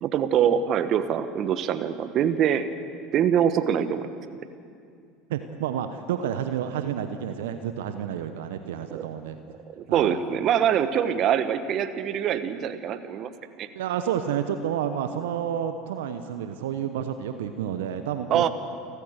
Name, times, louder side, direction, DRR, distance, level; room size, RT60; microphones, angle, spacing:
voice 1, 0.0-2.7 3.1-4.1 8.9-9.1 9.7-13.3 13.6-13.7 18.3-18.5, right 9 dB, 45° right, 11 dB, 1.2 m, -24 dB
voice 2, 5.3-9.4 9.9-10.2 13.7-18.5, right 9 dB, 70° right, 9 dB, 0.9 m, -30 dB
29.5 x 13.5 x 6.7 m, 2.4 s
hypercardioid pair, 75°, 0 cm